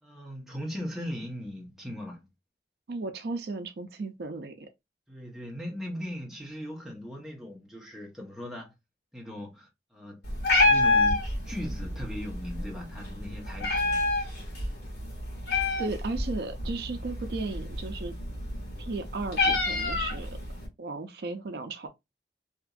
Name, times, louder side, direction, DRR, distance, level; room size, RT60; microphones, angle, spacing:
voice 1, 0.0-2.3 5.1-8.7 9.1-10.3 10.6-14.4, equal, 5° right, 0.7 m, -39 dB
voice 2, 2.9-4.7 15.8-18.1 18.8-20.4 20.8-21.9, right 3 dB, 65° right, 0.4 m, -35 dB
Meow, 10.2-20.7, left 2 dB, 75° left, 1.4 m, -28 dB
2.9 x 2.5 x 2.3 m
head